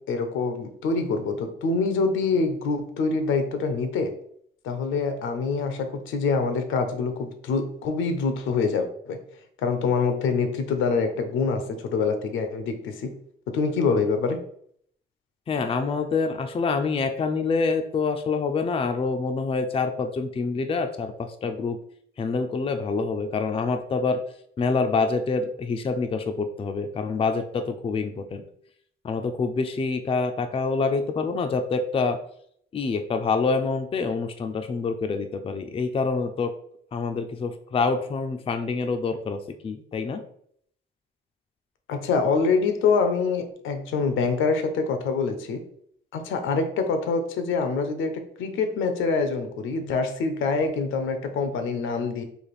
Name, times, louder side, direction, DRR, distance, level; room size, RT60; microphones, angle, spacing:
voice 1, 0.1-4.1 4.6-9.2 9.6-13.1 13.5-14.4 41.9-45.6 46.1-52.2, left 4 dB, 80° left, 7 dB, 0.6 m, -25 dB
voice 2, 15.5-21.8 22.2-24.2 24.6-28.4 29.0-32.2 32.7-36.5 36.9-40.2, left 4 dB, 30° left, 7 dB, 0.4 m, -26 dB
3.3 x 2.5 x 4.0 m, 0.66 s
cardioid pair, 90°, 20 cm